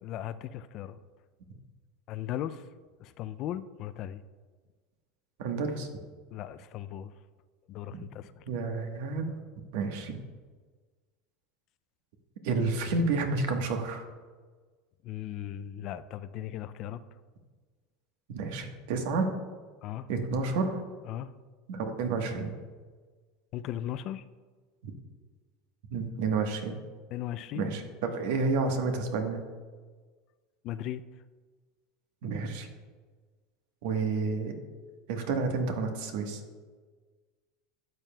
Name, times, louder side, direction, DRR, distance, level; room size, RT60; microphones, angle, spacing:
voice 1, 0.0-1.0 2.1-2.6 3.0-4.2 6.3-7.1 7.7-8.4 15.0-17.0 19.8-20.1 21.0-21.3 23.5-24.2 27.1-27.7 30.6-31.0, left 11 dB, 45° left, 14 dB, 0.3 m, -37 dB
voice 2, 5.4-5.9 7.9-8.0 8.5-9.3 9.7-10.2 12.4-14.0 18.3-19.3 20.1-20.8 21.7-22.5 24.8-24.9 25.9-26.8 27.5-29.4 32.2-32.7 33.8-34.5 35.1-36.4, right 4 dB, 75° right, 4 dB, 1.2 m, -30 dB
12.0 x 7.4 x 2.3 m, 1.4 s
supercardioid pair, 130°, 0 cm